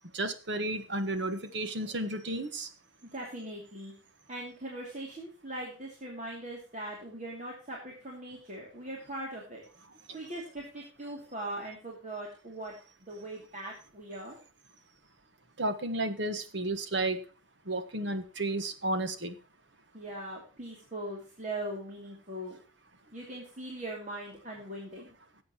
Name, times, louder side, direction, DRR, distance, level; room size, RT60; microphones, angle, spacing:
voice 1, 0.1-2.7 15.6-17.2 17.7-19.3, right 2 dB, 60° right, 9 dB, 1.4 m, -32 dB
voice 2, 3.0-3.9 4.3-9.6 10.1-12.7 13.1-14.4 19.9-22.6 23.1-25.1, right 1 dB, 40° right, -2 dB, 2.7 m, -40 dB
18.0 x 7.9 x 3.0 m, 0.37 s
head